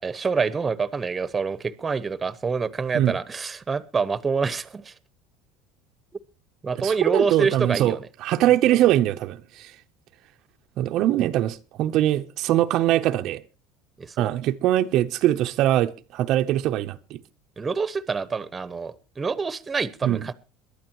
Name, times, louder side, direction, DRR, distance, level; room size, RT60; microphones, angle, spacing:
voice 1, 0.0-4.9 6.6-8.0 8.7-8.8 14.0-14.3 17.6-20.3, right 5 dB, 20° right, 1.0 m, -26 dB
voice 2, 6.8-9.7 10.8-13.4 14.2-17.2 20.0-20.3, right 13 dB, 55° right, 0.7 m, -22 dB
22.0 x 12.0 x 3.0 m
cardioid pair, 135°, 0 cm